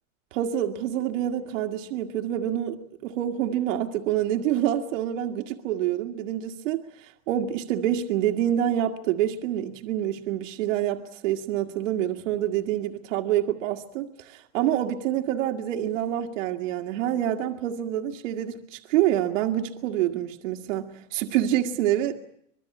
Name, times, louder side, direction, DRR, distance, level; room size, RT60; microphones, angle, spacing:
voice 1, 0.3-22.1, right 11 dB, 75° right, 2.0 m, -27 dB
25.0 x 22.0 x 8.6 m
supercardioid pair, 150°, 38 cm